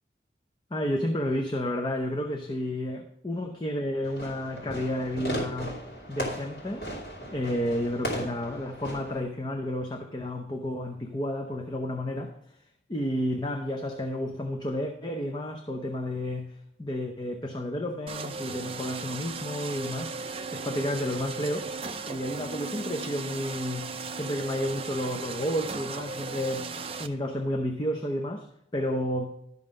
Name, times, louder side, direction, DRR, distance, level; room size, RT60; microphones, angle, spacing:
voice 1, 0.7-5.8 6.1-6.9 7.3-12.3 12.9-20.2 20.5-21.7 22.1-26.7 27.0-28.4 28.7-29.3, left 1 dB, 25° left, 3 dB, 0.7 m, -31 dB
Fireworks, 4.0-9.2, equal, 60° left, 2.8 m, -36 dB
sound 1, 18.1-27.1, right 4 dB, 30° right, 0.5 m, -36 dB
12.0 x 5.5 x 5.1 m, 0.77 s
head